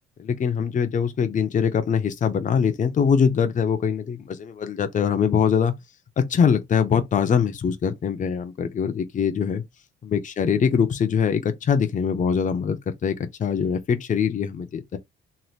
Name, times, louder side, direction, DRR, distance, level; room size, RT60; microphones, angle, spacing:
voice 1, 0.2-5.8 6.2-9.6 10.0-13.1 13.4-15.0, left 7 dB, 40° left, 0.6 m, -23 dB
3.2 x 2.8 x 2.3 m
cardioid pair, 90°, 20 cm